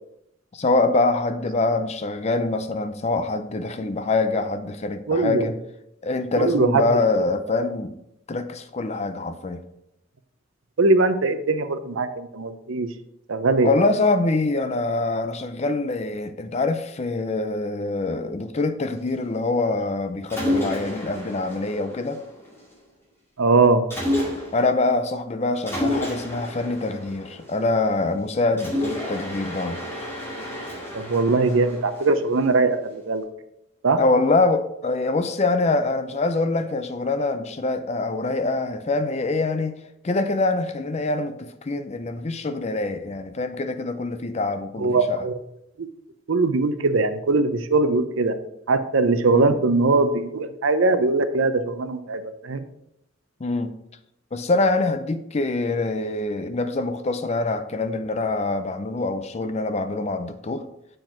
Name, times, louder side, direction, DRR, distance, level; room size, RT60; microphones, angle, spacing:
voice 1, 0.5-5.5 6.0-8.0 8.3-9.6 13.6-22.2 24.5-29.8 34.0-39.8 40.0-45.2 49.3-49.6 53.4-53.7 54.3-60.7, left 3 dB, 30° left, 0.5 m, -24 dB
voice 2, 5.1-5.5 6.3-6.9 10.8-12.9 13.3-13.7 23.4-23.8 30.9-33.2 33.8-34.0 44.8-45.4 45.8-45.9 46.3-48.4 48.7-52.6, right 3 dB, 75° right, 0.6 m, -21 dB
Mechanisms, 20.3-22.7 23.9-24.8 25.7-28.0 28.6-32.7, left 1 dB, 10° left, 2.0 m, -30 dB
7.6 x 4.7 x 4.4 m
head